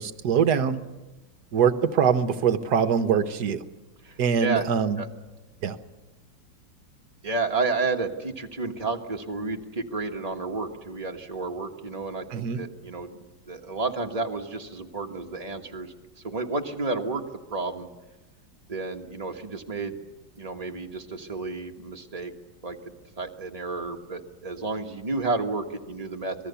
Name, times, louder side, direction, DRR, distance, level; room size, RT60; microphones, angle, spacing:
voice 1, 0.2-0.8 1.5-3.6 4.2-5.0 5.6-5.8 12.3-12.6, right 7 dB, 60° right, 10 dB, 1.4 m, -23 dB
voice 2, 4.0-4.7 5.0-5.1 7.2-13.2 13.5-15.9 16.2-17.2 17.5-17.9 18.7-20.0 20.4-22.3 22.6-22.8 23.2-26.5, right 3 dB, 20° right, 2 dB, 1.4 m, -31 dB
26.0 x 19.5 x 7.0 m, 1.1 s
omnidirectional pair, 2.2 m